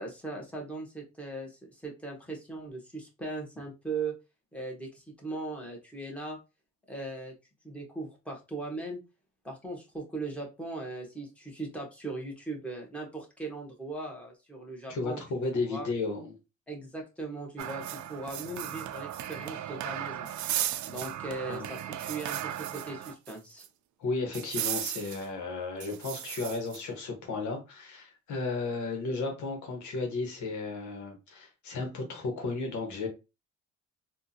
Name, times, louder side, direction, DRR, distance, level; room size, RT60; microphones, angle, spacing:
voice 1, 0.0-4.1 4.5-6.4 6.9-7.3 7.6-9.0 9.4-15.2 15.5-15.9 16.7-20.3 20.9-23.6, right 3 dB, 5° left, 1.5 m, -39 dB
voice 2, 14.9-16.4 21.5-21.7 24.0-33.1, left 3 dB, 75° left, 1.2 m, -34 dB
sound 1, 17.6-23.3 23.6-23.7 24.3-25.2 25.8-26.8, right 12 dB, 70° right, 0.5 m, -36 dB
3.6 x 2.5 x 2.8 m
cardioid pair, 90°, 30 cm